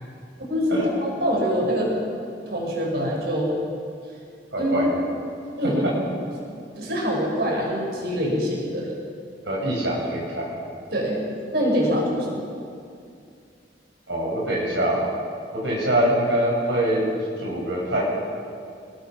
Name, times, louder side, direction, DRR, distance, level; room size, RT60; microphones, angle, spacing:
voice 1, 0.4-1.9 2.5-3.5 4.6-4.9 5.6-5.8 6.8-8.9 10.9-11.2 11.5-12.4, equal, 60° right, -1 dB, 6.2 m, -24 dB
voice 2, 4.5-4.9 9.5-10.5 14.1-15.1 15.5-17.0 17.4-18.0, right 1 dB, 85° right, -3 dB, 5.5 m, -24 dB
27.5 x 20.0 x 6.1 m, 2.4 s
head